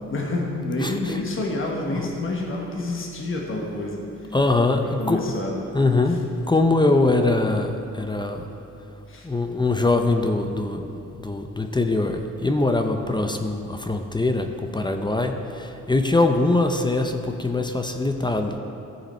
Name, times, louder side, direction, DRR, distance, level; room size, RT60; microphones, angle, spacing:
voice 1, 0.1-4.3 5.0-5.6 9.1-9.3, left 2 dB, 45° left, -1 dB, 1.3 m, -28 dB
voice 2, 0.8-1.2 1.9-2.1 4.3-5.4 5.7-6.2 6.5-8.5 9.2-10.8 11.1-18.6, left 2 dB, 15° left, 5 dB, 0.6 m, -22 dB
14.5 x 5.4 x 4.3 m, 2.8 s
wide cardioid pair, 115°, 29 cm